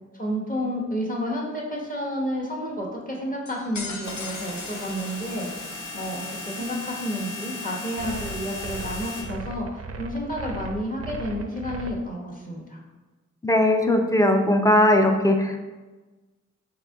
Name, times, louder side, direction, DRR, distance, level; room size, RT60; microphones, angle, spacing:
voice 1, 0.1-5.5 5.9-12.8, equal, 25° left, -3 dB, 1.0 m, -30 dB
sound 1, 3.5-6.0, left 3 dB, 65° left, 0.6 m, -39 dB
sound 2, 4.0-9.2, left 2 dB, 85° left, 1.4 m, -37 dB
sound 3, 8.0-11.9, right 3 dB, 50° right, 0.4 m, -36 dB
voice 2, 13.4-15.6, left 1 dB, 10° left, 4 dB, 0.4 m, -19 dB
4.0 x 2.8 x 3.5 m, 1.2 s
cardioid pair, 55°, 31 cm